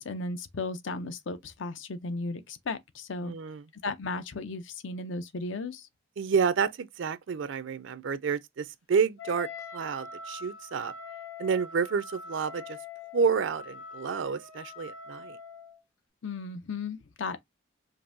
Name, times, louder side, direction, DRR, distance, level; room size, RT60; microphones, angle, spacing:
voice 1, 0.0-3.3 3.8-5.9 16.2-17.5, left 3 dB, 65° left, 0.6 m, -35 dB
voice 2, 3.2-3.6 6.2-10.9 11.4-12.8 13.1-15.4, right 6 dB, 65° right, 0.4 m, -29 dB
Wind instrument woodwind instrument, 9.2-15.8, left 4 dB, 85° left, 1.5 m, -43 dB
5.2 x 2.6 x 2.6 m
head